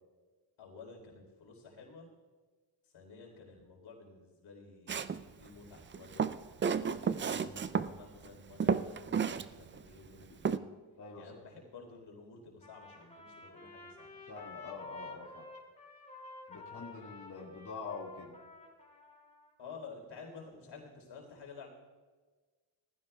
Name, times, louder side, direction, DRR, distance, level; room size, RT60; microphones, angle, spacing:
voice 1, 0.6-2.1 2.9-6.4 7.0-10.7 11.1-14.2 19.6-21.7, left 4 dB, 75° left, 1 dB, 4.0 m, -52 dB
Walk footsteps, 4.9-5.2 5.9-7.9 8.3-8.4 8.6-9.5 9.8-9.9 10.4-10.6, right 6 dB, 25° right, 0.4 m, -31 dB
voice 2, 11.0-11.4 14.3-15.5 16.5-18.4, left 4 dB, 40° left, -4 dB, 2.1 m, -45 dB
Trumpet, 12.6-19.5, left 3 dB, 15° left, 2.7 m, -51 dB
19.5 x 15.0 x 2.4 m, 1.4 s
cardioid pair, 100°, 48 cm